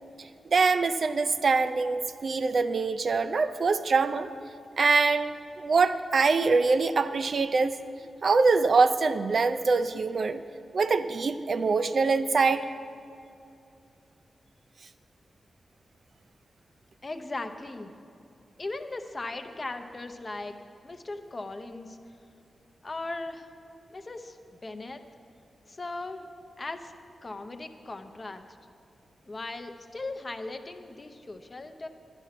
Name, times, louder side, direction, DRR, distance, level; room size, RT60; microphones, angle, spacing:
voice 1, 0.5-4.3 4.8-7.7 8.2-10.4 10.7-12.7, right 4 dB, 45° right, 11 dB, 0.4 m, -24 dB
voice 2, 17.0-17.9 18.6-20.6 20.8-22.0 22.8-23.5 23.9-24.4 24.6-25.0 25.7-26.3 26.6-26.9 27.2-28.4 29.3-31.9, left 2 dB, 25° left, 7 dB, 0.7 m, -38 dB
11.5 x 10.5 x 5.8 m, 2.6 s
wide cardioid pair, 165°, 0 cm